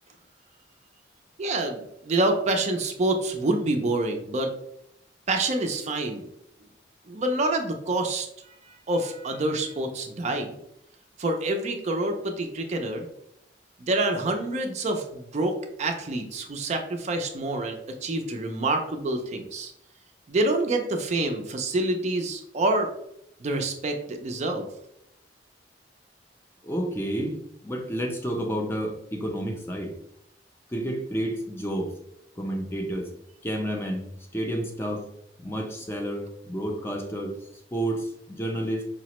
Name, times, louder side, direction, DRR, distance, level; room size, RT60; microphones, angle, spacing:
voice 1, 1.4-4.5 5.3-6.2 7.1-10.5 11.2-13.1 13.8-19.7 20.3-22.9 23.4-24.7, right 2 dB, 40° right, 4 dB, 0.4 m, -27 dB
voice 2, 26.6-27.3 27.6-29.9 30.7-31.9 32.4-33.1 33.4-34.1 34.3-35.0 35.4-37.3 37.7-38.9, right 1 dB, 15° left, 2 dB, 0.5 m, -30 dB
4.8 x 2.1 x 2.9 m, 0.76 s
head